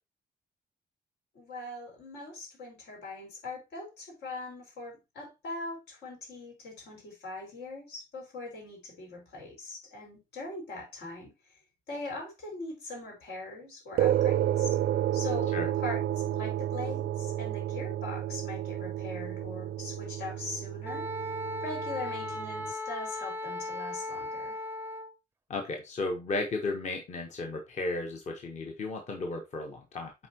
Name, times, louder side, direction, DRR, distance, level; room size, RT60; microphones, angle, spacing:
voice 1, 1.3-11.3 11.9-14.8 15.1-15.5 15.8-21.1 21.6-24.6, left 2 dB, 85° left, 4.4 m, -41 dB
sound 1, 14.0-22.7, right 12 dB, 75° right, 0.4 m, -31 dB
Wind instrument woodwind instrument, 20.8-25.1, left 1 dB, 15° right, 0.5 m, -36 dB
voice 2, 25.5-30.1, left 2 dB, 45° left, 1.1 m, -34 dB
8.3 x 4.5 x 2.9 m
wide cardioid pair, 165°, 17 cm